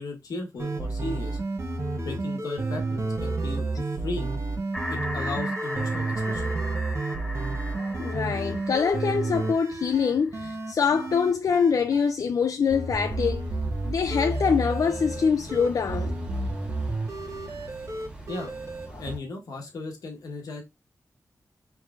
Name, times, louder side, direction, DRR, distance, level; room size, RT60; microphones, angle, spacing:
voice 1, 0.0-1.4 2.0-3.6 4.0-4.3 4.9-6.5 18.3-18.5 19.0-20.6, left 2 dB, 90° left, 1.2 m, -36 dB
sound 1, 0.6-12.1 12.7-19.1, right 2 dB, 50° right, 1.0 m, -31 dB
sound 2, 4.7-10.4, equal, 5° left, 1.7 m, -37 dB
voice 2, 7.7-13.4 13.8-16.1 18.9-19.0, left 6 dB, 70° left, 0.4 m, -24 dB
sound 3, 13.0-19.2, equal, 15° right, 1.4 m, -36 dB
4.7 x 3.6 x 2.4 m
cardioid pair, 75°, 6 cm